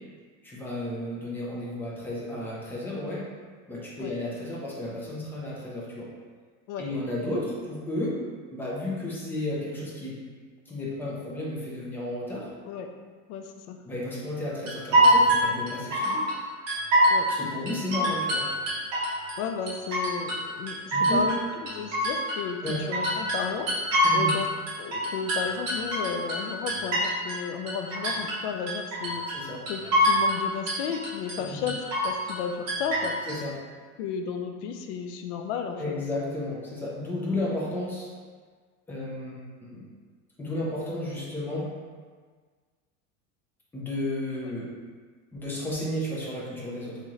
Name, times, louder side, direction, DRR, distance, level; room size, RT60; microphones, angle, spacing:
voice 1, 0.4-3.2 3.7-6.1 6.8-8.2 8.5-10.2 10.7-12.5 13.8-16.3 17.3-18.5 20.9-21.3 22.6-22.8 24.0-24.4 29.3-29.6 31.4-31.7 33.3-33.5 35.8-38.1 38.9-39.8 40.4-41.7 43.7-44.7 45.3-47.0, left 1 dB, 5° left, -6 dB, 0.5 m, -33 dB
voice 2, 13.3-13.8 17.1-17.3 19.4-21.3 21.6-24.5 24.8-31.8 32.0-33.2 34.0-35.8, left 6 dB, 65° left, 5 dB, 0.5 m, -33 dB
sound 1, 14.7-16.3 16.7-17.4 17.7-19.4 19.7-20.4 20.7-24.4 24.7-27.4 27.7-28.4 28.7-29.4 29.7-30.4 30.7-31.4 31.7-32.4 32.7-33.4, equal, 40° right, 1.2 m, -24 dB
3.1 x 2.9 x 3.7 m, 1.6 s
cardioid pair, 155°, 38 cm